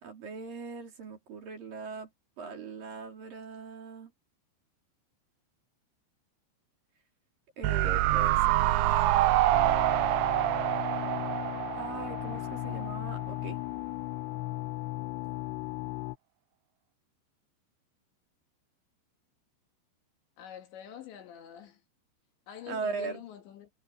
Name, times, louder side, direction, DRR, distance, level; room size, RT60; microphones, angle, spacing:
voice 1, 0.0-2.1 2.4-4.1 7.6-9.5 11.8-13.6 22.7-23.2, right 4 dB, 45° right, 4.5 m, -39 dB
sound 1, 7.6-12.9 13.2-13.3, right 15 dB, 80° right, 2.8 m, -26 dB
sound 2, 9.5-16.2, left 19 dB, 90° left, 2.4 m, -36 dB
voice 2, 20.4-21.8 22.5-23.7, left 10 dB, 65° left, 3.8 m, -46 dB
omnidirectional pair, 5.9 m